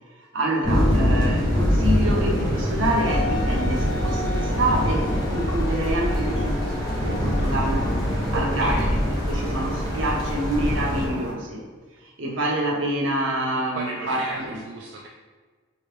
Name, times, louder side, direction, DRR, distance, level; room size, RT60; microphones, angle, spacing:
voice 1, 0.2-11.7 12.0-14.6, right 1 dB, 80° right, -1 dB, 0.8 m, -27 dB
sound 1, 0.6-11.1, equal, 20° left, 0.8 m, -24 dB
sound 2, 1.5-11.3, equal, 20° right, 1.4 m, -37 dB
Wind instrument woodwind instrument, 3.0-8.6, left 3 dB, 55° left, 0.3 m, -36 dB
voice 2, 8.3-8.9 13.8-15.1, right 2 dB, 60° right, -1 dB, 0.3 m, -34 dB
3.2 x 2.8 x 3.5 m, 1.4 s
head